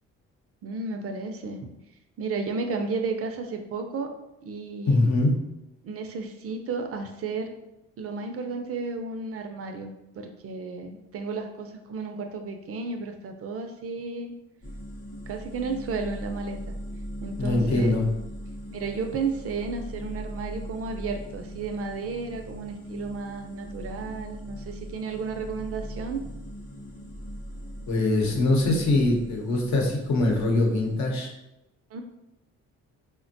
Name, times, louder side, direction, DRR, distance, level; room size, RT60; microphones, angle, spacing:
voice 1, 0.6-1.7 2.2-4.1 4.4-5.1 5.8-7.5 8.0-14.4 15.3-16.7 17.2-18.0 18.7-26.3 31.9-32.0, right 4 dB, 50° right, 5 dB, 0.4 m, -33 dB
voice 2, 4.8-5.3 17.4-18.1 27.9-31.3, left 2 dB, 65° left, 0 dB, 0.8 m, -23 dB
sound 1, 14.6-31.1, equal, 25° left, 0.6 m, -39 dB
3.4 x 2.1 x 2.6 m, 0.90 s
cardioid pair, 90°, 30 cm